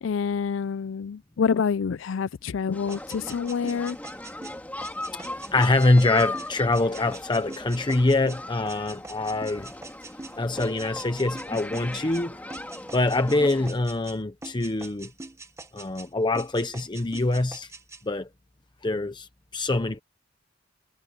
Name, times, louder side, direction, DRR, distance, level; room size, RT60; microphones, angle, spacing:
voice 1, 0.0-4.0, left 6 dB, 80° left, 0.4 m, -27 dB
sound 1, 2.7-13.7, left 1 dB, 10° left, 2.0 m, -38 dB
sound 2, 2.9-12.2 12.5-14.2 14.4-16.1 16.4-18.0, right 2 dB, 15° right, 1.2 m, -43 dB
voice 2, 5.1-9.7 10.3-12.4 12.9-15.1 15.7-17.7 18.0-18.3 18.8-20.0, left 2 dB, 25° left, 0.8 m, -24 dB
head